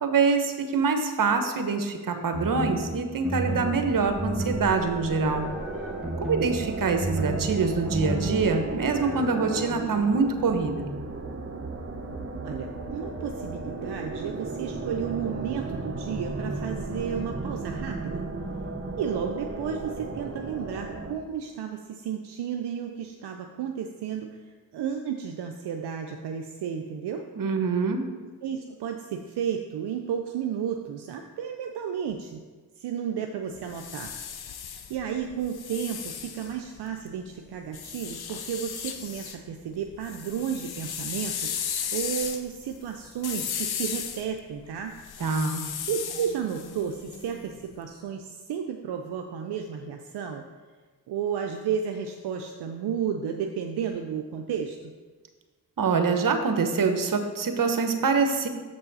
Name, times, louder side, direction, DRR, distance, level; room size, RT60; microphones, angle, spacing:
voice 1, 0.0-5.4 6.2-10.9 27.4-28.0 45.2-45.6 55.8-58.5, right 4 dB, 55° right, 6 dB, 1.0 m, -25 dB
sound 1, 2.3-9.7, right 1 dB, ahead, 1.4 m, -33 dB
sound 2, 3.1-21.1, right 3 dB, 35° right, 1.1 m, -35 dB
voice 2, 12.4-18.3 19.0-27.3 28.4-32.4 32.8-34.1 34.4-34.6 34.9-44.9 45.9-50.4 51.1-54.8, right 8 dB, 75° right, 4 dB, 0.6 m, -32 dB
sound 3, 33.5-37.1 37.7-39.4 39.7-47.6, left 8 dB, 65° left, 0.8 m, -35 dB
7.0 x 5.5 x 4.0 m, 1.4 s
supercardioid pair, 40°, 40 cm